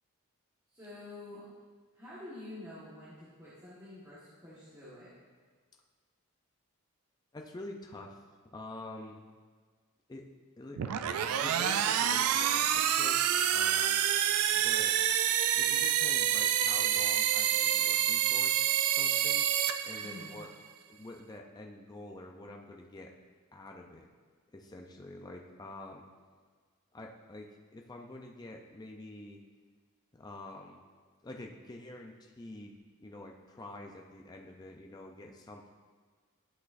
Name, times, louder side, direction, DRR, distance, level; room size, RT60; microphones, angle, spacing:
voice 1, 0.7-1.5 1.9-5.1 20.0-20.3, left 2 dB, 15° right, -11 dB, 1.4 m, -48 dB
voice 2, 7.3-8.2 8.5-9.3 10.1-10.3 10.6-14.0 14.5-15.0 15.5-19.4 19.8-20.5 20.9-23.1 23.5-24.1 24.5-26.0 26.9-29.4 30.2-30.8 31.2-32.7 33.0-35.7, left 2 dB, 20° left, 1 dB, 0.4 m, -47 dB
sound 1, 10.8-20.5, right 10 dB, 75° right, 0.4 m, -28 dB
10.5 x 6.0 x 2.5 m, 1.5 s
head